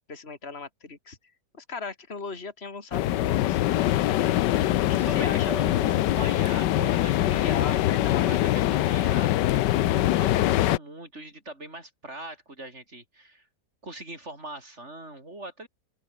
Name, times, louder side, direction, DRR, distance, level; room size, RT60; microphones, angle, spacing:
voice 1, 0.1-1.2 1.5-3.8 4.5-5.6 7.2-8.4, left 4 dB, 35° left, 3.4 m, -38 dB
sound 1, 2.9-10.8, left 14 dB, 85° left, 1.3 m, -23 dB
voice 2, 4.7-9.6 9.9-13.5 13.8-15.7, right 2 dB, 40° right, 6.0 m, -41 dB
open air
omnidirectional pair, 1.8 m